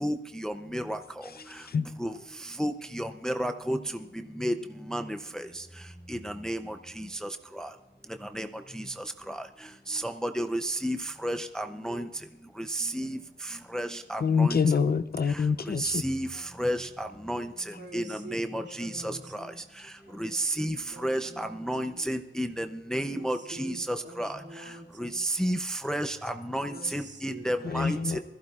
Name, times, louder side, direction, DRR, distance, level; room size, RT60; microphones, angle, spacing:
voice 1, 0.4-1.0 2.0-2.1 2.6-3.8 4.4-4.5 4.9-5.0 6.4-6.6 8.4-8.5 9.3-9.4 9.9-11.0 11.2-12.0 12.9-13.1 13.7-14.6 15.8-16.3 16.6-17.4 17.9-18.0 18.3-18.9 20.2-20.8 21.0-22.6 22.9-24.3 25.0-25.1 25.4-25.6 25.8-28.0, equal, 5° left, 0.5 m, -31 dB
voice 2, 14.2-16.0 27.6-28.2, left 5 dB, 50° left, 0.5 m, -25 dB
voice 3, 17.8-19.6 20.1-22.0 22.9-23.8 24.0-25.2 26.7-28.2, right 2 dB, 60° right, 2.3 m, -46 dB
21.5 x 15.0 x 2.4 m
wide cardioid pair, 130°, 21 cm